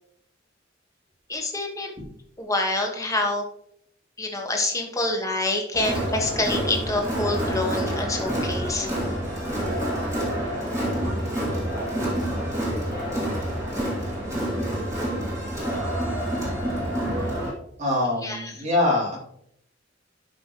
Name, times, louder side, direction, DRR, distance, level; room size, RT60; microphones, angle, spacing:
voice 1, 1.3-1.9 2.4-3.4 4.2-8.9 18.2-18.6, left 2 dB, 15° left, 2 dB, 1.3 m, -27 dB
Crowd, 5.7-17.5, equal, 15° right, 2.7 m, -27 dB
voice 2, 17.8-19.2, left 2 dB, 40° right, -3 dB, 2.4 m, -24 dB
11.0 x 5.3 x 3.0 m, 0.71 s
head